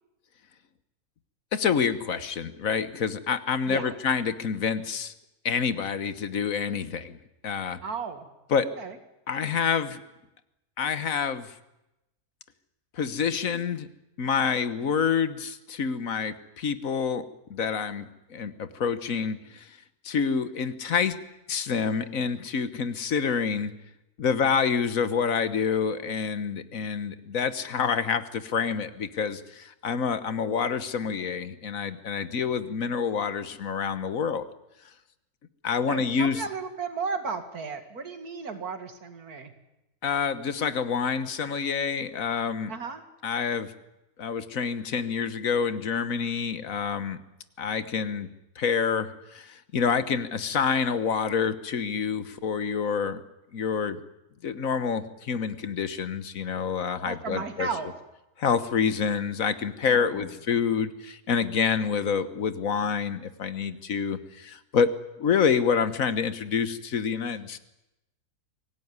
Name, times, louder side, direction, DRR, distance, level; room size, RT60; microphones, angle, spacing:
voice 1, 1.5-5.1 5.4-7.2 7.4-7.8 8.5-8.7 9.3-10.0 10.8-11.5 12.9-13.9 14.2-17.2 17.5-19.7 20.0-21.2 21.5-23.7 24.2-34.5 35.6-36.4 40.0-42.7 43.2-43.7 44.2-47.2 47.6-48.3 48.6-53.2 53.5-54.0 54.4-57.7 58.4-64.9 65.2-67.6, left 6 dB, 65° left, 13 dB, 1.5 m, -27 dB
voice 2, 7.8-8.3 8.8-9.0 35.9-39.5 42.7-43.0 57.0-57.9 59.9-60.2, right 5 dB, 80° right, 8 dB, 2.6 m, -34 dB
24.5 x 16.5 x 9.6 m, 0.93 s
omnidirectional pair, 1.6 m